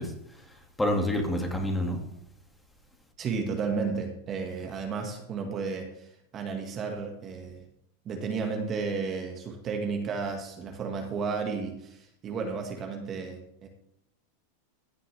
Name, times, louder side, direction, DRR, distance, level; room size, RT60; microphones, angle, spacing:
voice 1, 0.0-2.0, left 1 dB, 10° left, 2 dB, 2.2 m, -29 dB
voice 2, 3.2-7.6 8.1-13.7, right 5 dB, 35° right, 3 dB, 1.8 m, -33 dB
15.5 x 7.4 x 3.5 m, 0.75 s
hypercardioid pair, 115°, 0 cm